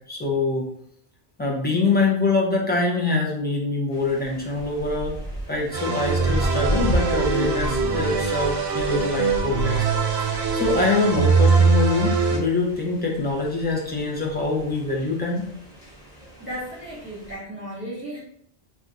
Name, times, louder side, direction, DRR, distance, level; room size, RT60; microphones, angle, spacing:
voice 1, 0.1-0.6 1.4-5.1 5.5-9.9 10.2-15.5, left 3 dB, 15° left, -2 dB, 0.4 m, -24 dB
sound 1, 3.9-17.4, right 1 dB, 35° left, 1.1 m, -34 dB
sound 2, 5.7-12.4, right 5 dB, 85° right, 1.0 m, -22 dB
voice 2, 16.4-18.2, equal, 10° right, -8 dB, 1.1 m, -35 dB
2.4 x 2.3 x 4.0 m, 0.68 s
omnidirectional pair, 1.1 m